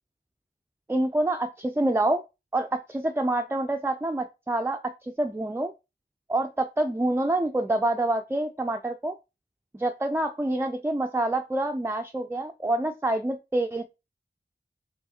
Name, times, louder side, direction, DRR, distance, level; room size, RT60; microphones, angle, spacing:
voice 1, 0.9-2.2 2.5-5.7 6.3-9.1 9.7-13.8, right 1 dB, 10° right, 5 dB, 0.4 m, -27 dB
4.6 x 3.2 x 2.8 m, 0.27 s
wide cardioid pair, 45°, 19 cm